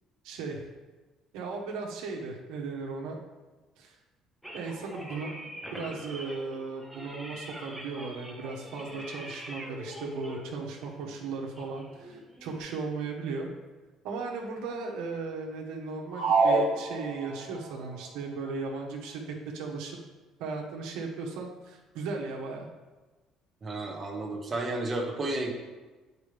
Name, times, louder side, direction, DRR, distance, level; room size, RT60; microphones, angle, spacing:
voice 1, 0.2-0.7 1.3-3.2 3.8-3.9 4.5-13.5 14.0-20.0 20.4-22.7, right 4 dB, 90° right, 0 dB, 1.2 m, -36 dB
sound 1, 4.4-12.6, equal, ahead, 1.0 m, -44 dB
sound 2, 16.1-17.6, right 3 dB, 55° right, 1.0 m, -25 dB
voice 2, 23.6-25.5, right 2 dB, 25° right, 0 dB, 1.0 m, -32 dB
8.3 x 4.7 x 3.4 m, 1.2 s
cardioid pair, 130°, 0 cm